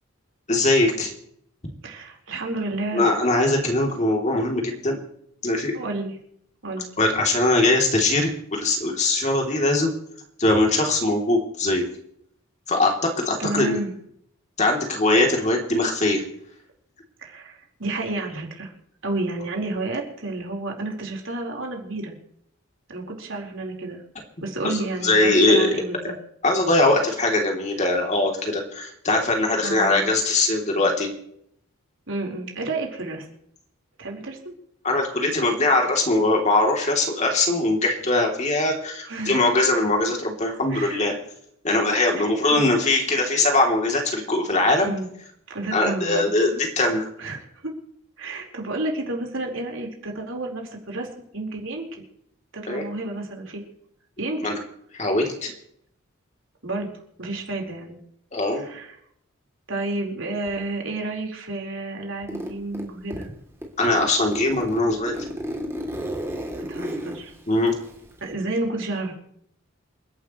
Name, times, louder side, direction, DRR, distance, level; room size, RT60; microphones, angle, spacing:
voice 1, 0.5-1.1 2.9-5.0 5.4-5.7 7.0-9.9 10.4-11.8 12.7-13.8 14.6-16.2 24.6-25.7 26.4-31.1 34.8-41.2 41.6-44.9 45.7-47.1 52.7-52.8 54.4-54.6 54.9-55.5 58.3-58.6 63.8-65.2 67.5-67.7, left 2 dB, 35° left, 1 dB, 3.2 m, -21 dB
voice 2, 1.8-3.1 5.7-6.2 6.6-6.8 13.4-13.9 17.2-18.7 19.0-22.1 22.9-24.0 24.4-26.1 29.6-30.1 32.1-33.3 34.0-34.5 39.1-39.4 40.7-41.0 42.2-42.6 44.8-45.1 45.5-46.3 47.2-47.7 48.2-51.8 52.5-53.6 54.2-54.4 56.6-56.9 57.2-58.0 58.6-59.0 59.7-63.3 66.7-67.3 68.2-69.1, right 2 dB, 65° right, 0 dB, 4.6 m, -31 dB
Zipper (clothing), 62.3-63.3 63.6-68.3, equal, 10° right, 3.1 m, -33 dB
28.5 x 11.5 x 3.2 m, 0.71 s
head